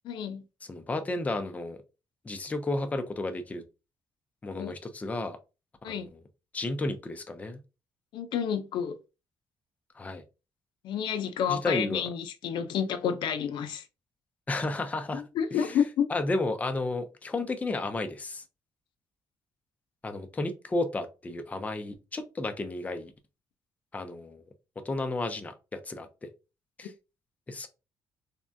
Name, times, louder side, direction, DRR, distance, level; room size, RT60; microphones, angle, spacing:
voice 1, 0.0-0.4 4.6-4.7 5.8-6.1 8.1-9.0 10.8-13.9 15.1-16.1, left 8 dB, 75° left, 0.4 m, -30 dB
voice 2, 0.6-1.8 2.2-3.6 4.4-5.4 5.9-6.2 6.5-7.6 9.9-10.2 11.5-12.1 14.5-15.2 15.5-15.8 16.1-18.4 20.0-23.1 23.9-24.4 24.8-26.3 26.8-26.9 27.5-27.7, left 2 dB, 20° left, 0.5 m, -32 dB
3.5 x 2.1 x 2.5 m
cardioid pair, 120°, 8 cm